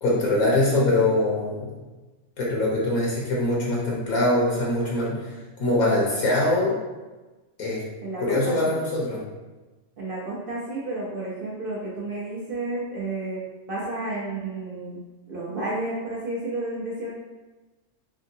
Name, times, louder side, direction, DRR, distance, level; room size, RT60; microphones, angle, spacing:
voice 1, 0.0-1.7 2.4-6.7 7.6-7.8 8.2-9.2, left 2 dB, 70° left, -4 dB, 1.3 m, -23 dB
voice 2, 8.0-8.7 10.0-15.0 15.3-17.1, right 2 dB, 50° right, -5 dB, 0.7 m, -31 dB
3.5 x 3.5 x 2.7 m, 1.2 s
omnidirectional pair, 1.6 m